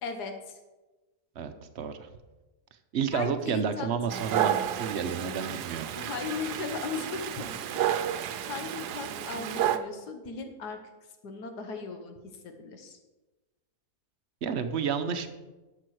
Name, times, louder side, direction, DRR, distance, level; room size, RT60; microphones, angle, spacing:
voice 1, 0.0-0.6 3.1-3.9 6.0-7.6 7.9-8.1 8.5-10.8 11.2-12.2 12.4-13.0, left 5 dB, 85° left, 6 dB, 1.7 m, -37 dB
voice 2, 1.4-2.1 2.9-5.9 14.4-15.3, right 6 dB, 55° right, 9 dB, 0.9 m, -31 dB
Dog, 4.1-9.8, right 10 dB, 85° right, 1.2 m, -31 dB
12.0 x 7.0 x 4.8 m, 1.1 s
omnidirectional pair, 1.7 m